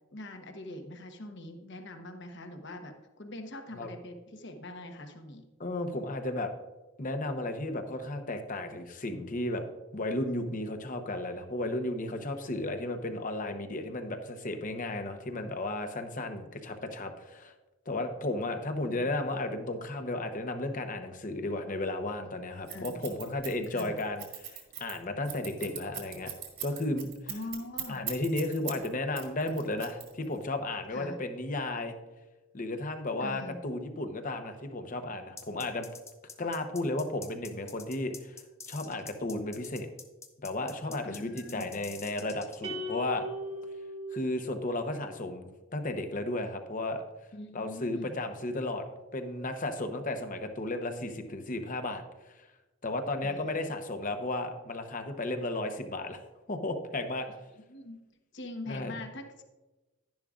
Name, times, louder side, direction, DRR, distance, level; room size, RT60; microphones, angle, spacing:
voice 1, 0.1-5.4 22.7-23.1 23.7-23.9 27.3-28.0 30.9-31.2 33.2-33.6 41.0-41.8 47.3-48.2 53.2-53.6 57.7-58.0 58.3-59.4, left 1 dB, 60° left, 5 dB, 1.1 m, -43 dB
voice 2, 5.6-6.5 7.0-9.6 9.9-17.5 17.9-26.3 26.6-27.1 27.9-31.9 32.5-35.9 36.4-38.4 38.7-39.9 40.4-43.3 44.1-47.0 47.5-48.8 49.1-52.5 52.8-56.2 56.5-57.4 58.7-58.9, left 2 dB, 40° left, 6 dB, 0.9 m, -34 dB
Scissors, 22.7-28.9 29.2-30.4, right 9 dB, 50° right, 1.9 m, -39 dB
sound 1, 35.4-42.7, left 4 dB, 15° left, 0.7 m, -47 dB
sound 2, 42.6-45.1, left 1 dB, 30° right, 1.4 m, -39 dB
11.5 x 10.5 x 2.5 m, 1.1 s
head